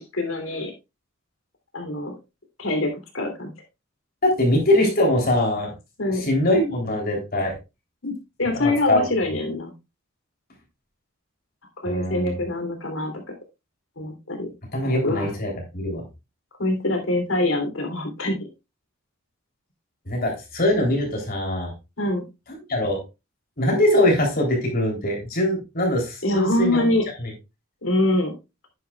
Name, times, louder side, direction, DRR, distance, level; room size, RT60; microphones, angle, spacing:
voice 1, 0.1-0.7 1.7-2.1 2.6-3.5 6.0-6.2 8.0-8.1 8.4-9.7 11.8-13.3 14.0-14.5 15.0-15.3 16.6-18.3 22.0-22.2 26.2-27.1 27.8-28.3, left 1 dB, 90° left, 5 dB, 3.2 m, -24 dB
voice 2, 4.2-5.7 6.1-7.5 8.5-9.1 11.8-12.4 14.7-16.0 20.1-21.7 22.7-23.0 23.6-26.9 27.2-27.3, left 1 dB, 50° left, 1 dB, 3.5 m, -22 dB
11.0 x 9.5 x 2.4 m, 0.25 s
head